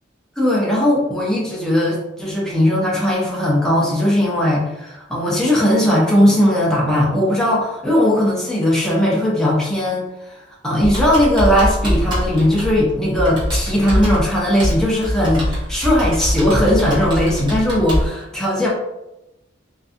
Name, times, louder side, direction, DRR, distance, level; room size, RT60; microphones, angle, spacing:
voice 1, 0.4-10.0 10.6-18.7, left 1 dB, 5° left, -5 dB, 0.5 m, -18 dB
Computer keyboard, 10.8-18.1, equal, 25° right, 0.9 m, -23 dB
2.5 x 2.2 x 2.3 m, 0.93 s
head